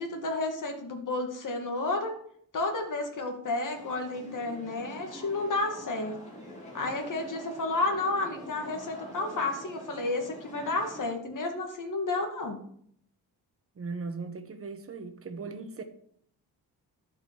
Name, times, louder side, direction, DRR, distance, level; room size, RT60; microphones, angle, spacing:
voice 1, 0.0-2.1 2.5-6.2 6.7-12.6, left 2 dB, 55° left, 2.3 m, -31 dB
sound 1, 3.7-11.1, equal, 20° left, 3.6 m, -46 dB
voice 2, 13.8-15.8, right 4 dB, 35° right, 1.3 m, -38 dB
11.5 x 5.5 x 7.0 m
wide cardioid pair, 135°, 38 cm